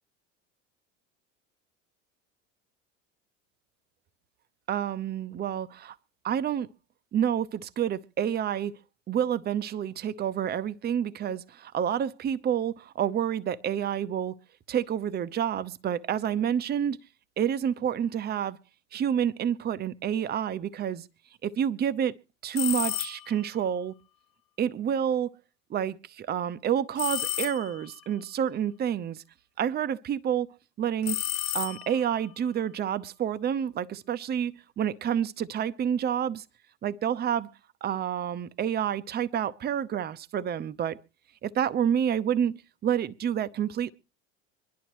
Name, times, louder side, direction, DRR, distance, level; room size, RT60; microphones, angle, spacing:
voice 1, 4.7-6.0 6.2-6.7 7.1-8.7 9.1-14.3 14.7-17.0 17.4-18.6 18.9-21.1 21.4-22.1 22.4-23.9 24.6-25.3 25.7-29.2 29.6-30.5 30.8-31.2 31.5-36.4 36.8-37.5 37.8-41.0 41.4-43.9, right 9 dB, 25° right, 0.6 m, -28 dB
sound 1, 22.5-23.5 27.0-28.0 31.0-32.2, left 12 dB, 70° left, 0.6 m, -32 dB
25.0 x 11.5 x 3.0 m
hypercardioid pair, 90°, 38 cm